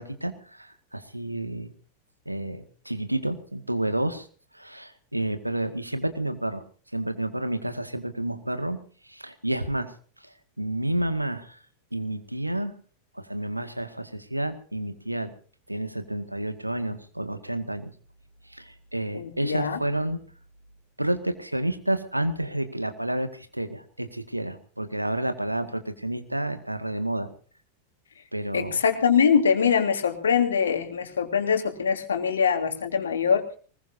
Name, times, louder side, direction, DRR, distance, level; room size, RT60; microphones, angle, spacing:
voice 1, 0.0-1.7 2.3-4.3 4.5-6.6 6.9-8.8 9.0-9.9 10.2-11.6 11.9-12.7 13.1-15.3 15.7-17.9 18.5-20.2 21.0-27.3 28.3-28.8, right 1 dB, 85° right, 9 dB, 2.0 m, -30 dB
voice 2, 19.1-19.8 28.5-33.6, left 6 dB, 70° left, 5 dB, 3.1 m, -23 dB
23.5 x 21.0 x 2.8 m, 0.41 s
figure-of-eight pair, 90°, 0 cm